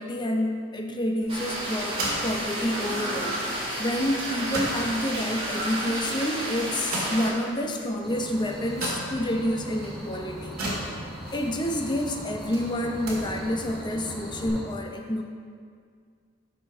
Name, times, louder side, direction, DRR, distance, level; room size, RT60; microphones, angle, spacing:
voice 1, 0.0-10.6 11.3-15.2, left 1 dB, 20° left, 2 dB, 0.6 m, -29 dB
sound 1, 1.2-14.5, right 1 dB, 75° right, 2.0 m, -38 dB
sound 2, 1.3-7.3, right 1 dB, 25° right, 2.1 m, -31 dB
sound 3, 8.0-14.6, equal, ahead, 1.3 m, -40 dB
13.0 x 5.2 x 3.6 m, 2.1 s
head